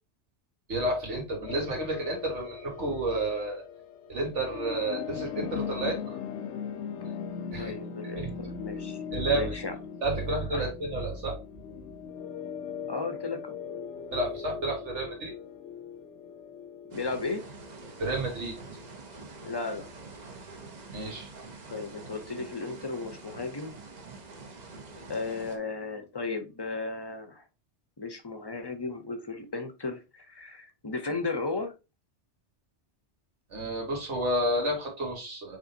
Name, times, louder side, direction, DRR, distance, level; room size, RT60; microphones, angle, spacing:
voice 1, 0.7-3.6 4.1-6.2 7.5-7.7 8.2-8.3 9.1-9.6 10.0-11.4 14.1-15.3 18.0-18.5 20.9-21.3 33.5-35.6, right 1 dB, 85° right, 0 dB, 2.0 m, -30 dB
sound 1, 1.5-19.1, left 7 dB, 80° left, 0.9 m, -40 dB
voice 2, 7.5-9.0 9.3-9.8 10.5-10.7 12.9-13.6 16.9-17.4 19.4-19.9 21.7-23.8 25.1-27.4 28.0-31.7, left 3 dB, 25° left, 7 dB, 0.6 m, -35 dB
sound 2, 16.9-25.6, right 3 dB, 40° right, 0.8 m, -46 dB
5.4 x 3.6 x 2.7 m, 0.28 s
omnidirectional pair, 1.2 m